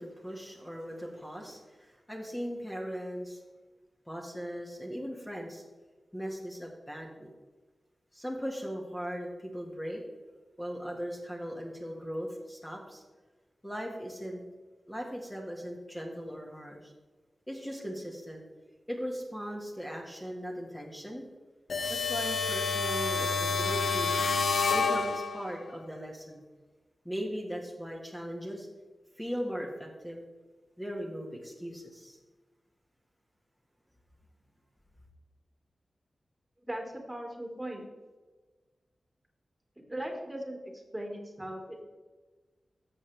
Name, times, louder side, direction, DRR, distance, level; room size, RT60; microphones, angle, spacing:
voice 1, 0.0-3.4 4.1-5.6 6.1-7.3 8.1-10.0 10.6-13.0 13.6-14.4 14.9-16.9 17.5-18.4 18.9-21.2 21.9-24.1 24.7-26.4 27.1-28.7 29.1-30.2 30.8-32.2, equal, 10° left, -2 dB, 1.8 m, -38 dB
sound 1, 21.7-25.6, left 4 dB, 70° left, 0.4 m, -29 dB
voice 2, 36.7-37.8 39.9-40.6 40.9-41.8, right 1 dB, 15° right, 1 dB, 2.1 m, -38 dB
13.5 x 7.6 x 3.4 m, 1.3 s
wide cardioid pair, 75°, 0 cm